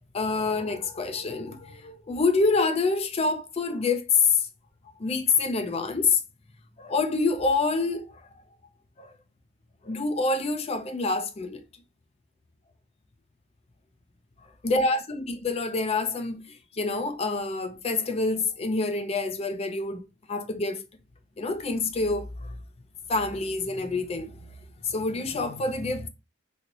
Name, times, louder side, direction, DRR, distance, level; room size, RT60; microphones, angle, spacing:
voice 1, 0.1-4.5 5.0-6.2 6.8-8.3 9.0-9.1 9.8-11.6 14.6-20.8 21.4-22.6 23.1-24.4 24.8-26.1, left 3 dB, 30° left, 0.4 m, -27 dB
3.1 x 2.9 x 2.6 m
head